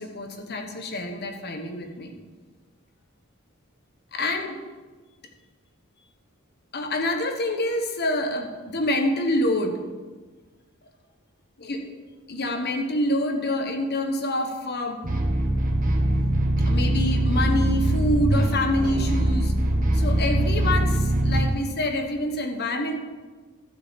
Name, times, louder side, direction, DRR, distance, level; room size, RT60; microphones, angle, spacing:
voice 1, 0.0-2.1 4.1-4.6 6.7-9.8 11.6-12.0 12.3-15.0 16.7-19.5 19.9-23.0, left 1 dB, 50° left, 5 dB, 1.2 m, -26 dB
sound 1, 15.0-21.4, right 1 dB, 40° right, 1.3 m, -22 dB
11.5 x 7.1 x 5.3 m, 1.3 s
head